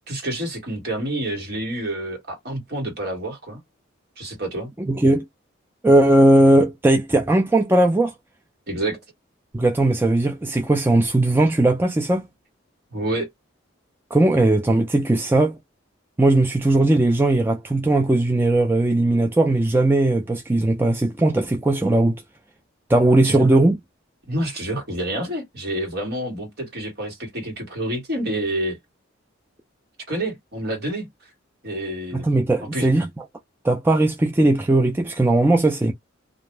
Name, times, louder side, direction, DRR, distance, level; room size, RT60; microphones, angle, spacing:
voice 1, 0.1-3.6 4.2-4.7 8.7-9.0 12.9-13.3 23.2-23.5 24.3-28.8 30.1-31.1 31.6-32.3 32.7-32.9, right 1 dB, 50° right, 1.5 m, -28 dB
voice 2, 4.8-5.2 5.8-8.1 9.5-12.2 14.1-15.6 16.2-22.2 22.9-23.8 32.1-33.1 33.6-35.9, right 2 dB, 10° right, 0.3 m, -18 dB
2.5 x 2.0 x 3.2 m
head